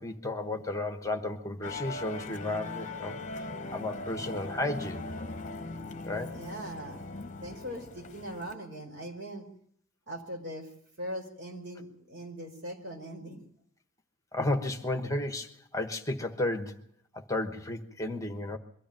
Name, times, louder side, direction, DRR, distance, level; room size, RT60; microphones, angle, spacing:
voice 1, 0.0-3.4 3.7-5.1 6.0-6.4 14.3-16.8 17.1-18.6, left 2 dB, 15° left, 7 dB, 1.2 m, -33 dB
Musical instrument, 1.6-8.5, left 2 dB, 35° left, 1.0 m, -40 dB
voice 2, 6.3-7.0 7.4-9.5 10.1-10.7 11.0-13.4, equal, 55° right, 2 dB, 5.4 m, -40 dB
23.0 x 13.5 x 9.1 m, 0.65 s
head